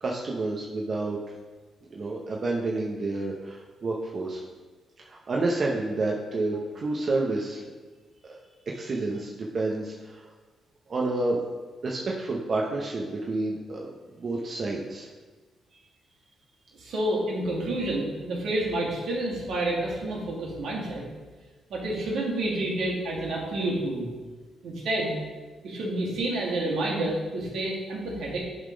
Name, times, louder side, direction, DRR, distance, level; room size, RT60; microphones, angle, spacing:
voice 1, 0.0-1.2 1.9-4.4 5.0-7.6 8.3-8.4 8.6-10.3 10.9-11.4 11.8-15.1, right 2 dB, 45° right, -2 dB, 0.7 m, -29 dB
voice 2, 16.8-21.0 21.7-24.1 24.6-25.2 25.6-28.4, right 1 dB, 75° right, -3 dB, 1.9 m, -29 dB
8.0 x 3.8 x 5.1 m, 1.4 s
cardioid pair, 100°, 0 cm